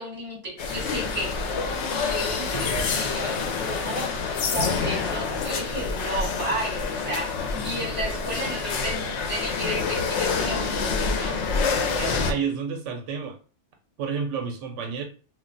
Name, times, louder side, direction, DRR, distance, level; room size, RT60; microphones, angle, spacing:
voice 1, 0.0-1.4 1.9-4.1 4.4-11.4, right 1 dB, 30° right, 1.3 m, -33 dB
sound 1, 0.6-12.3, left 4 dB, 75° left, 0.9 m, -27 dB
voice 2, 11.9-13.4 14.0-15.1, right 6 dB, 90° right, 1.0 m, -30 dB
2.4 x 2.1 x 3.8 m
omnidirectional pair, 1.2 m